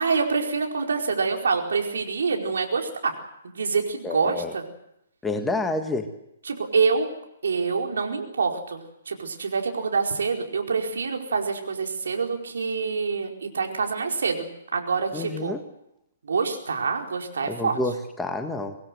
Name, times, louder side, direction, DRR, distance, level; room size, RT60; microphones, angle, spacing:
voice 1, 0.0-3.1 3.5-4.6 6.5-7.1 7.4-8.8 9.1-15.5 16.2-17.8, right 5 dB, 65° right, 2 dB, 4.7 m, -26 dB
voice 2, 4.0-4.5 5.2-6.1 15.1-15.6 17.4-18.8, left 2 dB, 5° left, 6 dB, 1.7 m, -28 dB
25.5 x 19.5 x 7.9 m, 0.82 s
figure-of-eight pair, 125°, 0 cm